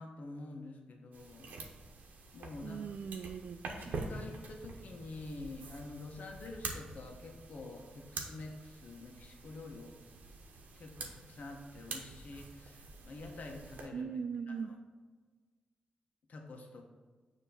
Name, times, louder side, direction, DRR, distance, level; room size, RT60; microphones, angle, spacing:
voice 1, 0.0-1.5 2.3-2.9 3.7-9.9 10.8-14.1 14.5-14.7 16.3-16.9, left 2 dB, 65° left, 2 dB, 1.0 m, -47 dB
sound 1, 1.1-13.9, right 3 dB, 85° right, 0.9 m, -46 dB
voice 2, 2.6-3.6 3.8-3.9 13.9-14.7, right 6 dB, 65° right, 13 dB, 0.3 m, -39 dB
6.8 x 2.9 x 5.7 m, 1.4 s
cardioid pair, 70°, 3 cm